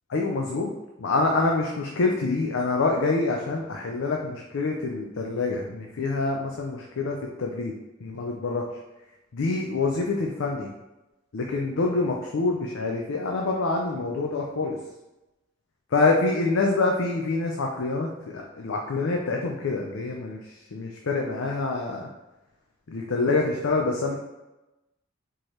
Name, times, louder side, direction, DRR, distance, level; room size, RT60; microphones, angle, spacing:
voice 1, 0.1-0.7 1.0-7.7 8.0-8.7 9.3-10.7 11.3-14.8 15.9-22.1 22.9-24.2, left 3 dB, 70° left, 0 dB, 0.5 m, -26 dB
4.5 x 3.0 x 3.2 m, 1.0 s
head